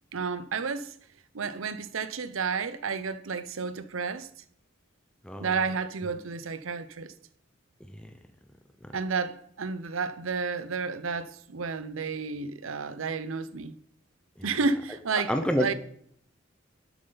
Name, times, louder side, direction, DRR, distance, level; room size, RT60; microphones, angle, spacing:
voice 1, 0.1-0.9 1.3-4.3 5.4-7.1 8.9-13.8 14.4-15.7, right 4 dB, 85° right, 0.7 m, -31 dB
voice 2, 15.3-15.7, equal, 5° left, 0.8 m, -29 dB
12.0 x 7.8 x 4.0 m
head